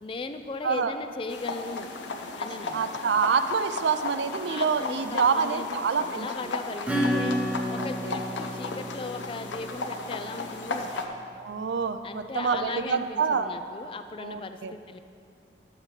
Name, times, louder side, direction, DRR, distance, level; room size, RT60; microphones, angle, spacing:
voice 1, 0.0-1.9 2.4-2.8 4.5-7.4 7.7-10.9 12.0-15.0, left 3 dB, 30° left, 9 dB, 0.3 m, -37 dB
sound 1, 1.3-11.1, left 3 dB, 85° left, 0.7 m, -35 dB
voice 2, 2.7-6.3 7.7-8.2 11.4-13.5 14.2-14.7, right 5 dB, 75° right, 9 dB, 0.4 m, -27 dB
Acoustic guitar / Strum, 6.9-11.1, equal, 5° right, 0.8 m, -31 dB
11.5 x 7.2 x 3.2 m, 2.3 s
head